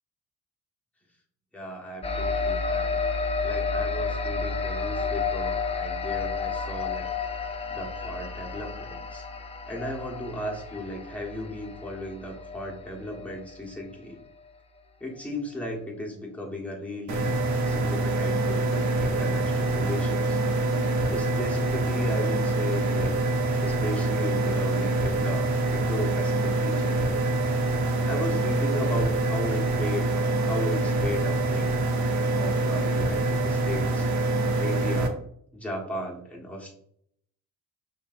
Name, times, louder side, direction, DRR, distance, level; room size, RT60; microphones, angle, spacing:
voice 1, 1.5-3.0 3.4-7.1 7.7-9.3 9.7-14.2 15.0-17.3 17.6-20.4 21.1-23.2 23.6-27.0 28.0-31.7 32.3-34.1 34.6-35.2 35.5-36.7, left 1 dB, 5° left, -2 dB, 1.5 m, -35 dB
sound 1, 2.0-13.8, left 4 dB, 20° left, 0.6 m, -31 dB
sound 2, 17.1-35.1, right 2 dB, 70° right, 1.0 m, -25 dB
5.6 x 3.3 x 2.6 m, 0.67 s
cardioid pair, 90°, 30 cm